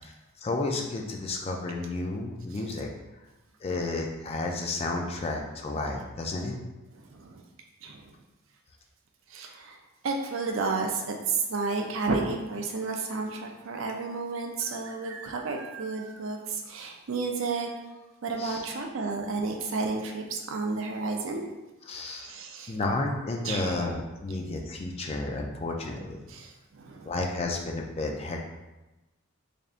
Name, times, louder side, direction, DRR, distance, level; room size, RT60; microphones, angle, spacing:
voice 1, 0.4-2.9 3.6-6.6 18.4-18.6 21.9-22.3 22.7-26.2 27.0-28.5, left 2 dB, 30° left, 1 dB, 0.4 m, -32 dB
voice 2, 6.9-7.4 7.8-8.1 9.3-9.8 10.0-17.7 18.2-21.5 22.2-22.7 23.4-24.0 26.3-27.2, right 4 dB, 65° right, 3 dB, 0.5 m, -32 dB
3.9 x 3.4 x 2.4 m, 1.1 s
head